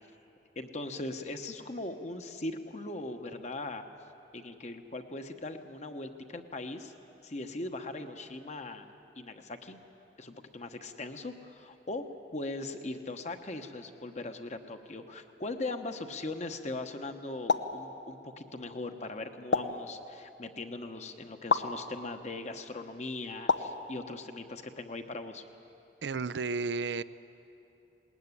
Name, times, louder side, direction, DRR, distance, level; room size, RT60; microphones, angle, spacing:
voice 1, 0.5-3.8 4.3-6.9 7.2-8.9 9.1-9.8 10.2-12.0 12.3-25.4, left 2 dB, 40° left, 6 dB, 1.2 m, -39 dB
sound 1, 17.5-17.8 19.5-19.8 21.5-21.7 23.5-23.8, left 4 dB, 80° left, 0.9 m, -27 dB
voice 2, 26.0-27.0, right 4 dB, 80° right, 15 dB, 0.5 m, -32 dB
19.5 x 19.5 x 9.8 m, 2.9 s
head